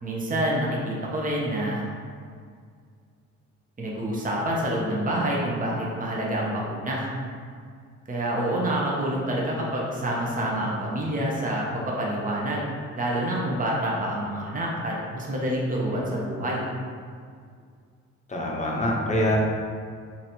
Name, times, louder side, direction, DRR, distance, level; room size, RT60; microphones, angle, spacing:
voice 1, 0.0-1.8 3.8-7.1 8.1-12.6 13.0-16.7, right 1 dB, 25° right, -3 dB, 0.9 m, -27 dB
voice 2, 18.3-19.4, left 1 dB, 25° left, -2 dB, 0.8 m, -24 dB
3.0 x 2.7 x 4.3 m, 2.1 s
cardioid pair, 90°, 30 cm